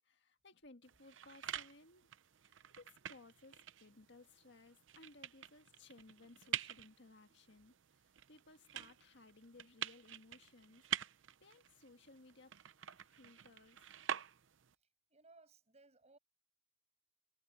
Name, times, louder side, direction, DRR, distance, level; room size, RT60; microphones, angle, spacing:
voice 1, 0.0-2.1 2.4-10.9 11.4-12.6 13.0-13.9, left 2 dB, 65° left, 1.8 m, -61 dB
sound 1, 0.8-14.8, right 10 dB, 90° right, 0.7 m, -47 dB
voice 2, 14.7-16.2, right 3 dB, 35° right, 6.7 m, -65 dB
head